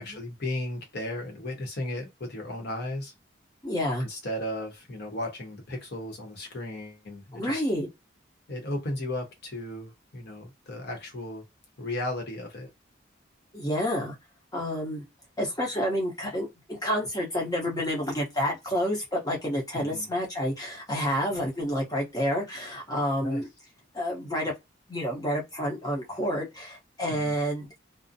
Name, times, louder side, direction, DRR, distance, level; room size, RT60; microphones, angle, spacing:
voice 1, 0.0-3.1 4.0-7.6 8.5-11.4 11.8-12.7 19.7-20.1 23.2-23.4 27.1-27.3, left 1 dB, 55° left, 0.9 m, -35 dB
voice 2, 3.6-4.1 7.3-7.9 13.5-14.1 14.5-15.0 15.4-23.5 23.9-24.5 24.9-27.7, equal, 20° left, 0.8 m, -29 dB
2.5 x 2.0 x 2.6 m
head